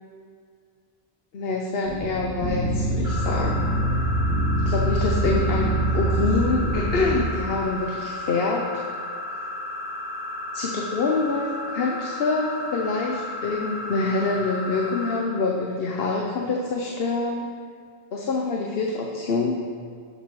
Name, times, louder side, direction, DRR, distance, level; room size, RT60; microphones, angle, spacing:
voice 1, 1.3-3.6 4.7-8.6 10.5-17.5 18.1-19.5, left 3 dB, 65° left, 0 dB, 1.0 m, -26 dB
sound 1, 1.8-7.2, right 1 dB, 10° left, 1.9 m, -24 dB
sound 2, 3.0-15.2, left 2 dB, 45° right, 3.1 m, -34 dB
11.5 x 6.7 x 4.8 m, 2.2 s
omnidirectional pair, 1.1 m